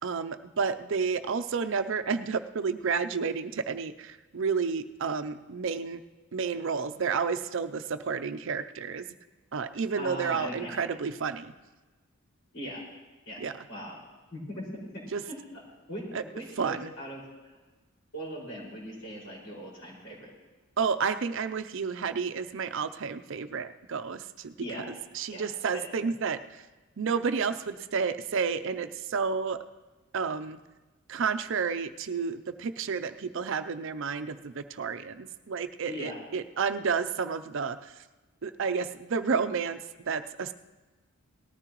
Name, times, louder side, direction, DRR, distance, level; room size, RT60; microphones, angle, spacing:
voice 1, 0.0-6.0 6.3-9.1 9.5-11.5 13.4-13.6 15.1-15.2 16.1-16.2 16.6-16.9 20.8-24.5 25.1-26.6 27.0-29.6 30.1-30.6 31.1-37.9 38.4-39.8 40.1-40.5, right 5 dB, 60° right, 10 dB, 0.5 m, -31 dB
voice 2, 10.0-10.8 12.5-12.8 13.3-13.4 13.7-14.0 14.3-14.7 14.9-15.4 15.9-17.2 18.1-20.3 24.6-24.9 25.3-25.4 25.7-26.1 35.9-36.2, equal, 65° left, -4 dB, 5.4 m, -39 dB
19.0 x 13.5 x 3.0 m, 1.2 s
head